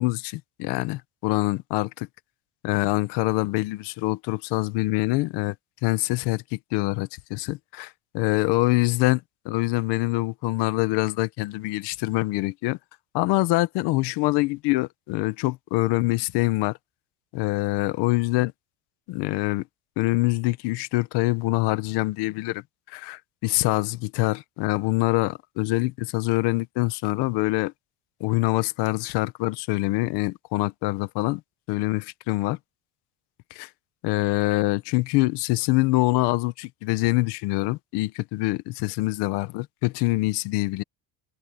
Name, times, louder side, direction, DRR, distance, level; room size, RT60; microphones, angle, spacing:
voice 1, 0.0-2.1 2.6-5.5 5.8-12.8 13.1-16.8 17.3-18.5 19.1-19.6 20.0-22.6 22.9-27.7 28.2-31.4 31.7-32.6 33.5-33.7 34.0-40.8, left 20 dB, 75° left, 1.2 m, -25 dB
cardioid pair, 180°, 41 cm